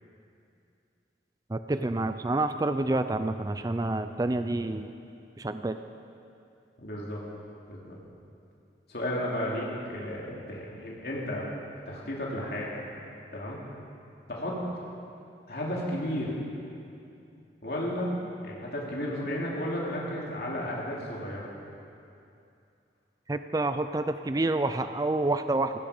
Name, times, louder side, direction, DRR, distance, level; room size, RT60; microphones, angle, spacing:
voice 1, 1.5-4.9 5.4-5.8 23.3-25.7, right 2 dB, 20° right, 10 dB, 0.4 m, -28 dB
voice 2, 6.8-7.2 7.7-8.0 8.9-11.5 11.9-12.7 13.3-13.6 14.3-14.6 15.5-16.4 17.6-18.1 18.4-21.5, left 1 dB, 60° left, -4 dB, 3.0 m, -33 dB
17.0 x 16.5 x 5.1 m, 2.6 s
head